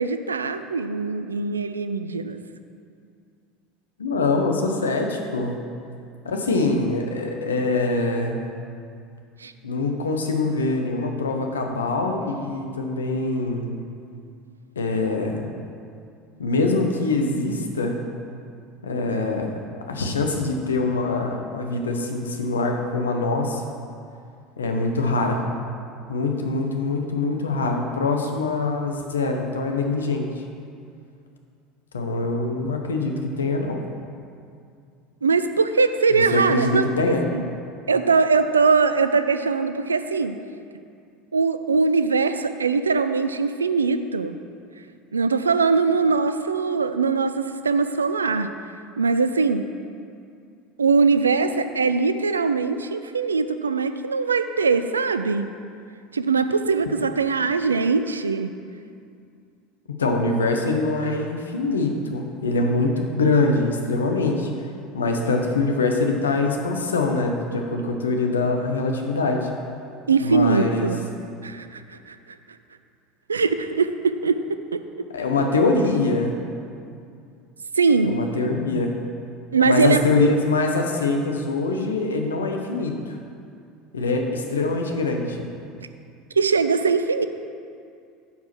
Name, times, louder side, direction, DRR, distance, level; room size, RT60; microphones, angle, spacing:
voice 1, 0.0-2.4 9.4-9.5 35.2-37.5 37.9-40.4 41.3-44.4 45.1-48.5 49.0-49.7 50.8-55.5 56.1-58.5 70.1-71.0 71.4-72.2 73.3-74.8 77.8-78.2 79.5-80.0 86.4-87.3, right 4 dB, 80° right, 10 dB, 0.4 m, -21 dB
voice 2, 4.0-5.6 6.2-8.4 9.6-13.7 14.8-15.5 16.4-18.0 18.8-19.6 19.9-23.6 24.6-25.5 26.1-30.3 31.9-33.8 36.1-37.3 59.9-64.5 64.9-69.5 70.2-70.9 75.1-76.4 78.0-78.9 79.6-83.2 83.9-85.4, left 3 dB, 80° left, 3 dB, 0.9 m, -24 dB
9.3 x 4.8 x 6.0 m, 2.4 s
figure-of-eight pair, 70°, 0 cm